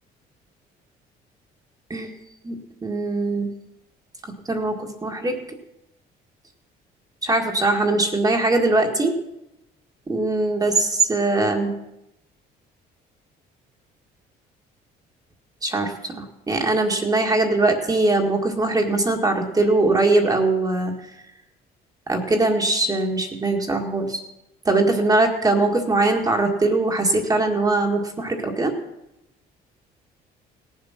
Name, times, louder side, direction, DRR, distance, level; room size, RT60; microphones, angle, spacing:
voice 1, 2.4-3.5 4.5-5.4 7.2-9.1 10.1-11.7 15.6-20.9 22.1-24.2 24.7-28.7, right 2 dB, 20° right, 2 dB, 1.8 m, -21 dB
17.5 x 7.4 x 5.8 m, 0.88 s
cardioid pair, 110°, 17 cm